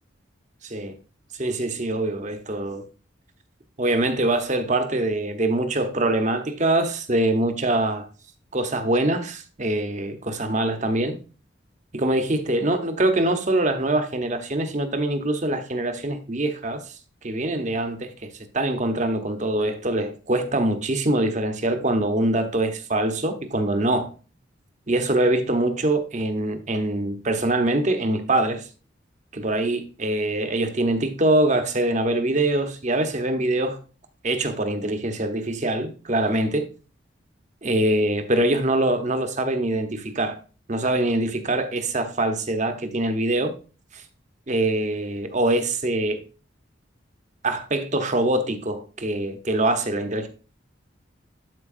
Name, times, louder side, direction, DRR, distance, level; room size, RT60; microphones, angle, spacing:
voice 1, 0.6-0.9 1.4-2.8 3.8-8.1 8.5-11.2 11.9-16.9 17.2-18.3 18.5-24.1 24.9-28.7 29.3-33.8 34.2-36.7 37.6-40.4 40.7-43.5 43.9-44.0 44.5-46.2 47.4-50.3, right 1 dB, 35° right, 0.9 m, -24 dB
12.0 x 4.6 x 2.6 m
head